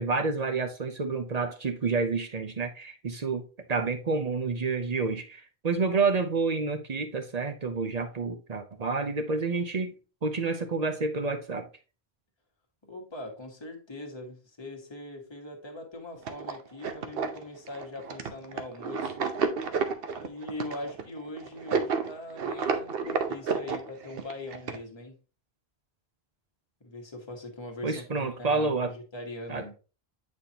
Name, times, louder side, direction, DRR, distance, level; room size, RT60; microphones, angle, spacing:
voice 1, 0.0-3.4 3.7-10.0 10.2-11.7 27.8-28.9 29.5-29.6, right 4 dB, 45° right, 0.7 m, -29 dB
voice 2, 12.8-19.3 20.2-25.2 26.8-29.7, left 2 dB, 25° left, 1.3 m, -41 dB
sound 1, 16.2-24.8, right 5 dB, 70° right, 0.9 m, -31 dB
8.6 x 4.3 x 2.8 m
omnidirectional pair, 1.0 m